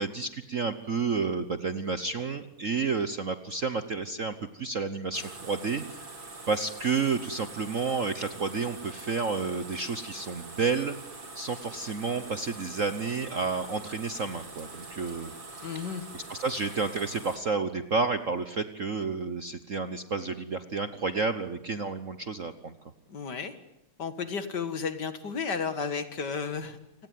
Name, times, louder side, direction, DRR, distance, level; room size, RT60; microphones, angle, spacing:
voice 1, 0.0-6.0 6.5-10.9 11.3-22.8, right 4 dB, 45° right, 11 dB, 1.1 m, -31 dB
sound 1, 5.1-17.4, right 3 dB, 80° right, 5.2 m, -44 dB
voice 2, 15.6-16.1 23.1-23.5 24.0-26.8, left 5 dB, 50° left, 11 dB, 2.3 m, -33 dB
28.5 x 18.5 x 9.4 m, 0.83 s
omnidirectional pair, 2.4 m